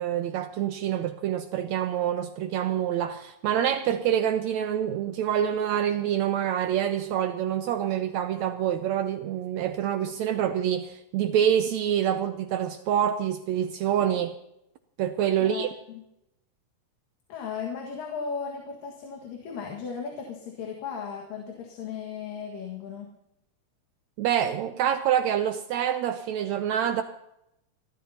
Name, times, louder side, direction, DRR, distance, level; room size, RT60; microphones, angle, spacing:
voice 1, 0.0-14.4 15.0-15.7 24.2-27.0, right 10 dB, 80° right, 1.6 m, -26 dB
voice 2, 17.3-23.1, left 6 dB, 85° left, 3.5 m, -36 dB
30.0 x 12.5 x 2.8 m
omnidirectional pair, 3.8 m